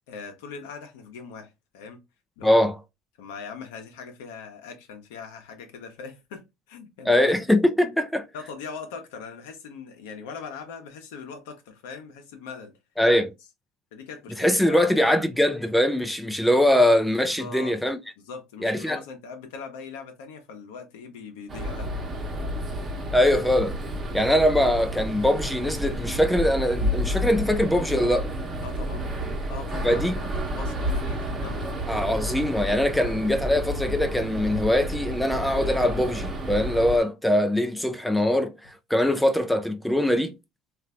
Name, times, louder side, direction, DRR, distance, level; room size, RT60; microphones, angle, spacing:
voice 1, 0.1-2.0 2.4-2.5 3.2-7.6 8.3-12.7 13.9-15.2 17.3-17.7 18.2-21.9 28.6-29.1 29.5-32.0, left 5 dB, 85° left, 0.8 m, -41 dB
voice 2, 2.4-2.8 7.1-8.3 13.0-13.3 14.4-18.0 18.6-19.0 23.1-23.8 24.1-28.3 29.8-30.2 31.9-40.4, left 1 dB, 5° left, 0.4 m, -22 dB
sound 1, 21.5-37.0, equal, 25° right, 1.0 m, -30 dB
3.2 x 2.6 x 2.4 m
supercardioid pair, 110°, 0 cm